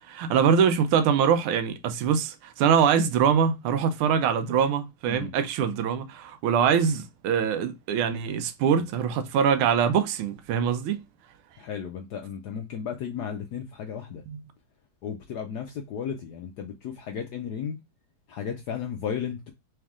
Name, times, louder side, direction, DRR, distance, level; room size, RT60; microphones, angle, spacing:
voice 1, 0.1-11.0 14.3-14.4, right 7 dB, 85° right, 1.5 m, -23 dB
voice 2, 11.6-14.2 15.0-17.8 18.3-19.5, left 7 dB, 75° left, 0.9 m, -34 dB
3.5 x 3.3 x 3.5 m
omnidirectional pair, 2.3 m